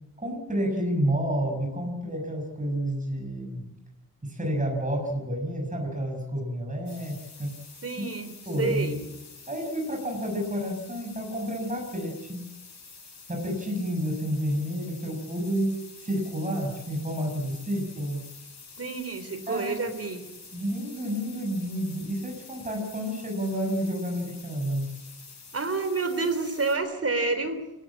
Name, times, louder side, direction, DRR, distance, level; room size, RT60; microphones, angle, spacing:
voice 1, 0.2-3.6 4.2-7.6 8.0-8.1 8.5-9.0 9.5-12.4 13.3-18.3 19.5-19.9 20.5-24.9, equal, 20° right, 1 dB, 6.6 m, -30 dB
sound 1, 6.9-26.8, left 4 dB, 50° left, 7.3 m, -48 dB
voice 2, 7.8-9.0 18.8-20.2 25.5-27.6, right 3 dB, 40° right, 10 dB, 3.4 m, -29 dB
28.5 x 15.0 x 8.8 m, 0.97 s
wide cardioid pair, 120°, 35 cm